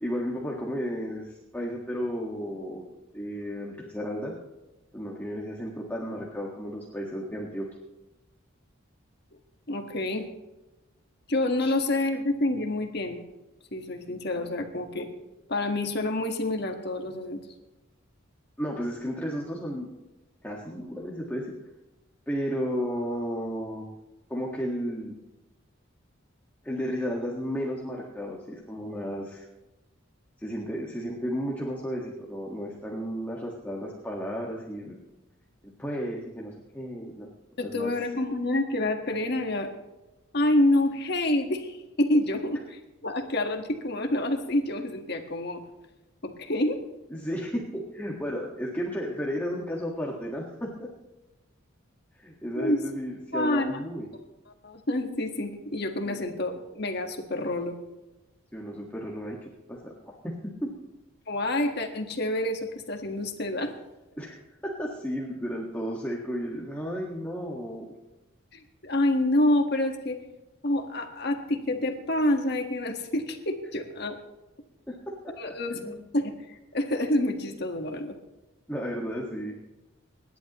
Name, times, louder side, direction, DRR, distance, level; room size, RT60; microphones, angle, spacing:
voice 1, 0.0-2.9 3.1-4.3 4.9-7.7 11.6-11.7 18.6-19.9 20.4-21.5 22.3-23.9 24.3-25.2 26.6-29.5 30.4-35.0 35.8-37.3 37.6-37.9 47.1-50.9 52.2-54.1 56.0-56.2 58.5-59.9 60.2-60.7 64.2-67.9 74.9-75.0 75.2-76.0 78.7-79.6, equal, 10° left, -3 dB, 1.6 m, -33 dB
voice 2, 9.7-10.2 11.3-13.2 13.7-15.1 15.5-17.4 37.6-39.7 40.3-45.6 46.2-46.8 52.5-52.8 53.3-53.8 54.6-57.7 61.3-63.7 68.5-70.2 70.6-74.2 75.4-75.8 76.1-78.1, left 1 dB, 50° left, 4 dB, 1.5 m, -27 dB
26.0 x 11.0 x 3.0 m, 1.1 s
head